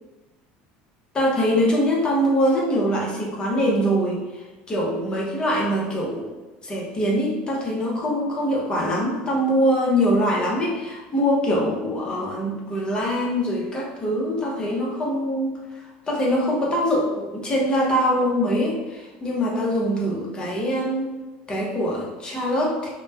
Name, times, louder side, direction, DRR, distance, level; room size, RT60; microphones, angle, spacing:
voice 1, 1.1-6.3 6.6-21.1 21.5-22.9, equal, 25° left, -3 dB, 0.7 m, -23 dB
3.0 x 2.1 x 2.2 m, 1.2 s
supercardioid pair, 125°, 4 cm